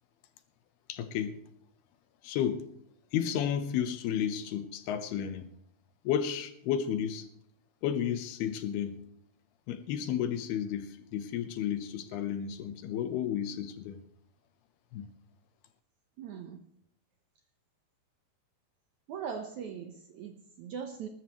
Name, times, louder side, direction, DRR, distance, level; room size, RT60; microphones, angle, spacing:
voice 1, 0.9-1.4 2.2-2.6 3.1-5.5 6.0-7.3 7.8-9.0 9.7-14.0 14.9-15.1, left 9 dB, 80° left, 10 dB, 3.0 m, -32 dB
voice 2, 16.2-16.6 19.1-21.1, right 7 dB, 70° right, 5 dB, 1.9 m, -40 dB
20.0 x 13.0 x 3.1 m, 0.65 s
omnidirectional pair, 4.5 m